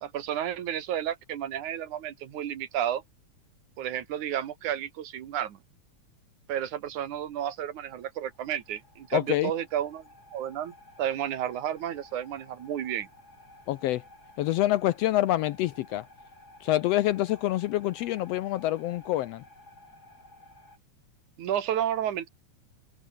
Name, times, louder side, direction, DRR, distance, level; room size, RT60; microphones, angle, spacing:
voice 1, 0.0-3.0 3.8-5.6 6.5-10.0 10.3-13.1 21.4-22.3, right 10 dB, 85° right, 3.1 m, -32 dB
sound 1, 7.3-20.8, left 2 dB, 30° left, 8.6 m, -54 dB
voice 2, 9.1-9.5 13.7-14.0 14.4-16.0 16.6-19.4, left 14 dB, 75° left, 1.5 m, -26 dB
omnidirectional pair, 3.4 m